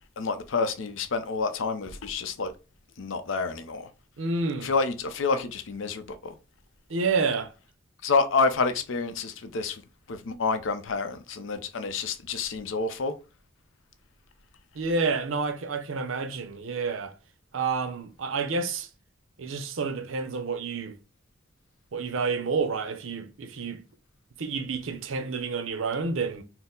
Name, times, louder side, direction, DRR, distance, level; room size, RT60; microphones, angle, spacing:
voice 1, 0.2-2.5 3.0-3.9 4.6-6.3 8.0-9.8 10.1-13.1, left 4 dB, 85° left, 0.6 m, -28 dB
voice 2, 4.2-4.7 6.9-7.5 14.8-17.1 17.5-18.9 19.4-20.9 21.9-23.8 24.4-26.4, right 4 dB, 90° right, 0.6 m, -29 dB
4.4 x 2.0 x 3.7 m
head